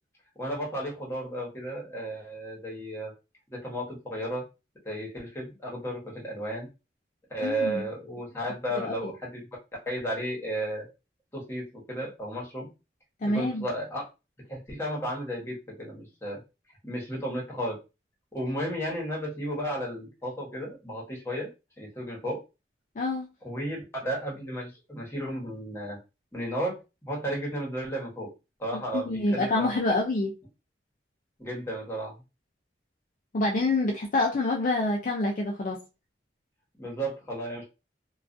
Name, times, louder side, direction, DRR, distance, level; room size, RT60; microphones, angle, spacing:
voice 1, 0.4-3.1 3.5-4.4 4.8-6.7 7.3-9.5 9.9-10.9 11.3-12.7 13.2-14.0 14.5-16.4 16.8-17.8 18.3-21.5 21.8-22.4 23.4-26.0 26.3-28.3 28.6-29.7 31.4-32.2 36.8-37.6, right 1 dB, 15° left, 1.0 m, -33 dB
voice 2, 7.4-7.8 8.7-9.1 13.2-13.6 23.0-23.3 28.9-30.3 33.3-35.8, left 2 dB, 45° left, 0.4 m, -27 dB
2.3 x 2.3 x 2.5 m
head